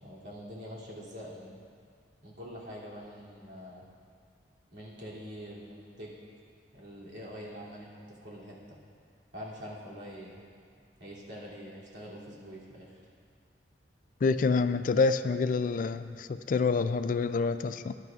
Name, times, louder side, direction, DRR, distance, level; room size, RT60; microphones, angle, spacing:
voice 1, 0.0-1.6 2.2-3.8 4.7-6.1 6.7-8.8 9.3-10.4 11.0-13.0, equal, 70° right, -6 dB, 2.9 m, -45 dB
voice 2, 14.2-17.9, left 4 dB, 45° left, 12 dB, 0.3 m, -27 dB
19.0 x 10.5 x 2.5 m, 2.2 s
head